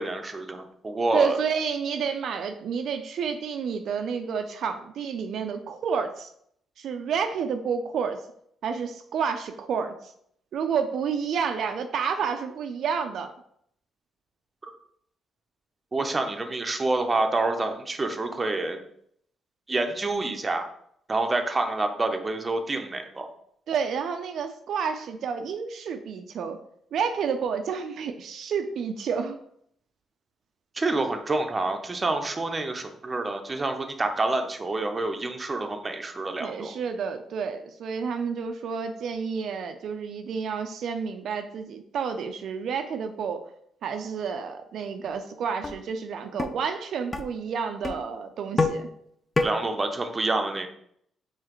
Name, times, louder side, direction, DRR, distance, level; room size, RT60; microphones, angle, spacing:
voice 1, 0.0-1.4 15.9-18.8 19.7-20.6 21.1-23.3 30.8-36.7 49.4-50.7, right 2 dB, 25° right, 5 dB, 0.6 m, -27 dB
voice 2, 1.1-6.3 6.8-8.2 8.6-10.1 10.5-13.3 20.1-20.4 23.7-26.6 26.9-29.4 36.4-43.4 43.8-48.9, right 6 dB, 70° right, 6 dB, 0.3 m, -30 dB
sound 1, 45.1-45.2 45.6-45.8 46.4-46.5 47.1-47.2 47.8-48.0 48.6-48.8 49.4-49.5, left 3 dB, 25° left, 0.5 m, -25 dB
4.8 x 3.1 x 3.0 m, 0.69 s
cardioid pair, 90°, 0 cm